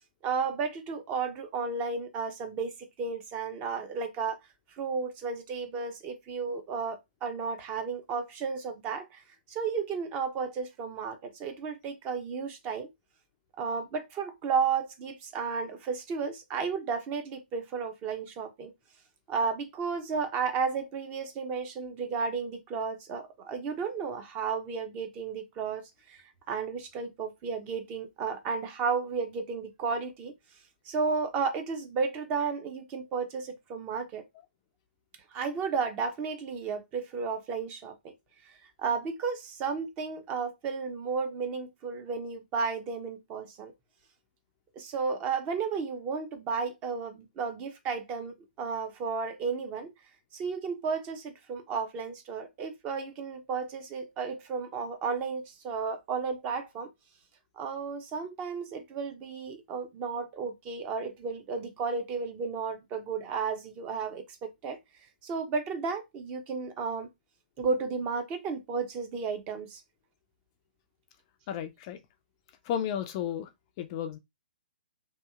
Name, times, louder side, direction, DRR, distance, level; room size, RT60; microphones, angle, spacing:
voice 1, 0.2-2.7 3.0-4.4 4.8-9.2 9.5-12.9 13.6-18.7 19.3-30.3 30.9-34.2 35.3-38.1 38.8-43.7 44.8-49.9 50.3-56.9 57.6-64.8 65.2-67.1 67.6-69.8, right 5 dB, 25° right, 0.6 m, -33 dB
voice 2, 71.5-72.0 72.7-73.5 73.8-74.2, left 9 dB, 30° left, 0.3 m, -33 dB
2.8 x 2.7 x 2.3 m
figure-of-eight pair, 125°, 5 cm